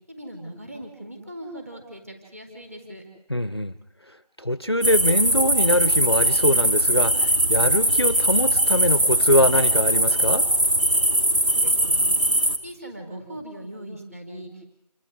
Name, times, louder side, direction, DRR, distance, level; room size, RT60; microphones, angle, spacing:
voice 1, 0.1-3.0 11.6-12.2 12.6-14.5, right 1 dB, 25° right, 4 dB, 4.4 m, -39 dB
voice 2, 3.3-3.7 4.4-10.5, left 1 dB, 40° left, 14 dB, 0.9 m, -23 dB
sound 1, 4.8-12.6, right 1 dB, 50° right, 2.8 m, -20 dB
28.5 x 22.5 x 5.0 m, 0.78 s
figure-of-eight pair, 175°, 20 cm